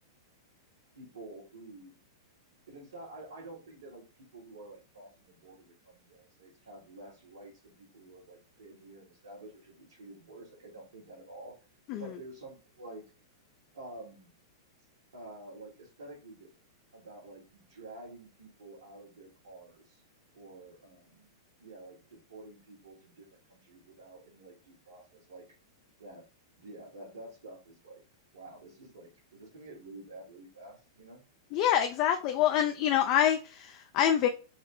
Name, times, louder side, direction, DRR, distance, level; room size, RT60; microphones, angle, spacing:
voice 1, 0.9-2.0 2.7-11.6 12.0-13.0 13.7-14.3 15.1-16.5 16.9-20.0 20.3-21.3 21.6-25.4 26.0-26.3 26.6-28.0 28.3-31.2, right 2 dB, 85° right, 1.6 m, -49 dB
voice 2, 31.5-34.3, left 10 dB, 45° left, 0.4 m, -26 dB
4.0 x 2.1 x 3.4 m
hypercardioid pair, 125°, 2 cm